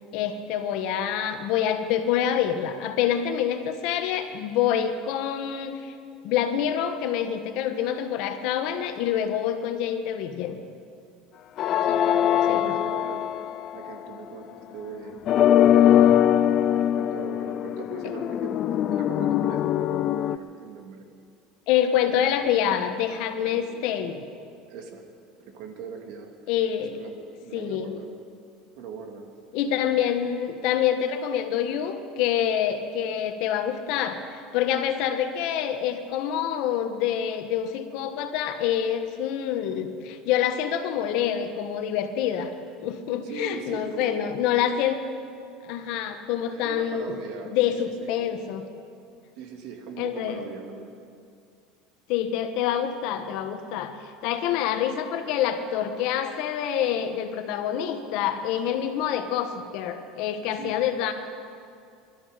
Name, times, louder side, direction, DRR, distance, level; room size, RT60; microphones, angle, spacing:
voice 1, 0.1-5.9 6.2-10.6 12.5-12.7 21.7-24.2 26.5-27.0 27.5-27.9 29.5-42.5 42.8-45.0 45.6-47.1 47.5-48.6 50.0-50.4 52.1-61.1, left 9 dB, 60° left, 8 dB, 1.3 m, -26 dB
sound 1, 11.6-14.1 15.3-20.4, left 10 dB, 40° left, 0.3 m, -22 dB
voice 2, 11.8-13.3 13.7-15.2 15.7-16.4 16.8-21.1 23.3-23.6 24.7-25.0 25.4-26.3 26.8-28.1 28.7-29.3 43.2-44.2 46.5-48.1 49.4-50.9 60.5-60.9, right 5 dB, 65° right, 3 dB, 2.2 m, -40 dB
22.0 x 12.5 x 5.2 m, 2.3 s
supercardioid pair, 140°, 0 cm